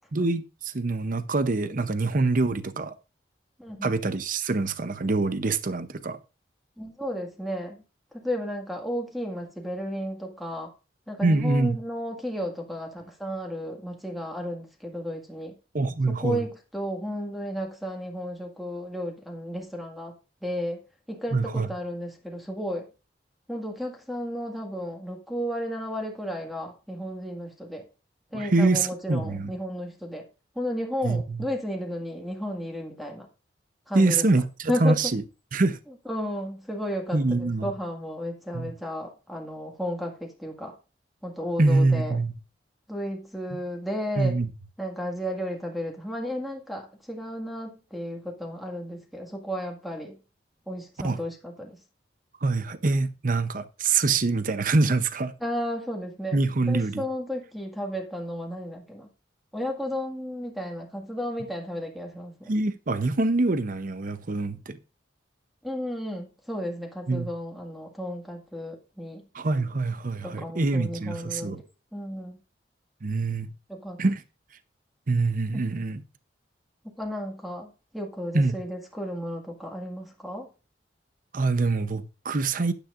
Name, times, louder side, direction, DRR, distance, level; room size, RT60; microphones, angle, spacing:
voice 1, 0.1-2.9 3.8-6.2 11.2-11.8 15.7-16.4 21.3-21.7 28.3-29.5 31.0-31.4 33.9-35.2 35.5-35.8 37.1-37.7 38.5-38.7 41.6-42.3 44.2-44.5 51.0-51.2 52.4-55.3 56.3-57.0 62.5-64.8 67.1-67.3 69.3-71.6 73.0-73.5 74.0-74.2 75.1-76.0 78.3-78.6 81.3-82.7, right 3 dB, 50° right, 0.7 m, -25 dB
voice 2, 3.6-3.9 6.8-7.8 8.1-10.7 11.1-15.5 16.1-20.1 20.4-20.8 21.1-22.9 23.5-27.8 28.3-30.3 30.6-33.3 33.9-34.3 34.7-35.1 36.1-40.8 41.2-42.2 42.9-44.4 44.8-50.2 50.7-51.8 55.4-56.4 56.7-59.1 59.5-62.5 65.6-69.2 70.2-71.6 71.9-72.4 73.7-74.0 75.5-75.6 77.0-80.5, equal, ahead, 1.8 m, -33 dB
12.0 x 10.0 x 2.5 m
head